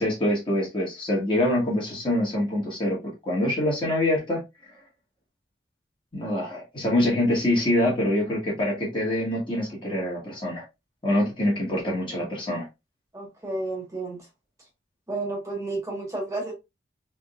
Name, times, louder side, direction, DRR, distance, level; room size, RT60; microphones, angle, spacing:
voice 1, 0.0-3.0 3.2-4.4 6.1-10.6 11.0-12.7, left 1 dB, 30° left, 1.7 m, -25 dB
voice 2, 13.1-14.2 15.1-16.5, right 2 dB, 15° right, 1.5 m, -31 dB
3.6 x 3.6 x 2.5 m
head